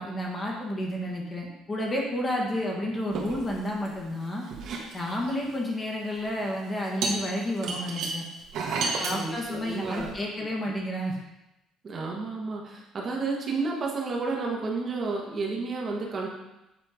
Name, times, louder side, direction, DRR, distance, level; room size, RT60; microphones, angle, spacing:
voice 1, 0.0-4.4 4.9-8.2 9.0-11.2, left 1 dB, 20° left, -1 dB, 1.4 m, -31 dB
sound 1, 3.1-4.1 4.4-5.5 6.2-6.4 7.0-10.1, right 4 dB, 60° right, 1.7 m, -32 dB
voice 2, 9.1-10.1 10.4-10.5 11.8-16.3, right 3 dB, 30° right, -2 dB, 1.3 m, -31 dB
8.5 x 4.3 x 5.0 m, 0.92 s
cardioid pair, 160°, 0 cm